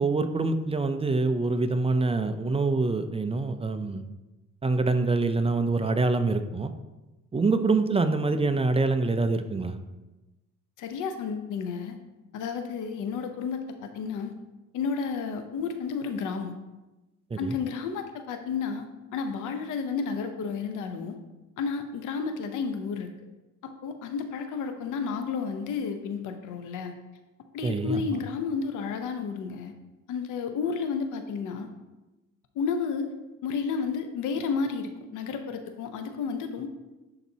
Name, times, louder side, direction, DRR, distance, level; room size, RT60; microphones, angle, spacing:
voice 1, 0.0-4.0 4.6-6.7 7.3-9.8 17.3-17.5 27.6-28.0, right 3 dB, 20° right, 9 dB, 0.5 m, -25 dB
voice 2, 10.8-12.0 12.3-14.3 14.7-16.5 17.4-18.8 19.1-21.2 21.6-23.1 23.6-26.9 27.5-29.7 30.1-31.7 32.6-33.1 33.4-36.7, left 5 dB, 85° left, 7 dB, 0.8 m, -31 dB
10.5 x 4.1 x 2.8 m, 1.1 s
cardioid pair, 90°, 30 cm